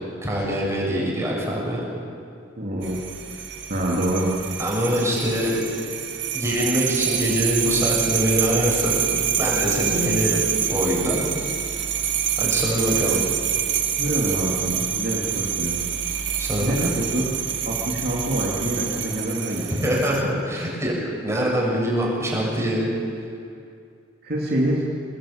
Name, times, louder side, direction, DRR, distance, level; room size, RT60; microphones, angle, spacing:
voice 1, 0.2-1.8 4.6-5.5 6.3-9.1 9.3-10.4 10.7-11.3 12.4-13.2 16.4-16.7 19.7-20.9 21.2-22.8, equal, 15° right, -3 dB, 7.2 m, -23 dB
voice 2, 2.6-3.0 3.7-4.4 14.0-15.8 16.6-17.3 17.6-19.7 24.2-24.8, right 1 dB, 55° right, -3 dB, 3.1 m, -25 dB
sound 1, 2.8-20.2, right 9 dB, 75° right, 1.9 m, -26 dB
24.5 x 20.5 x 8.9 m, 2.3 s
head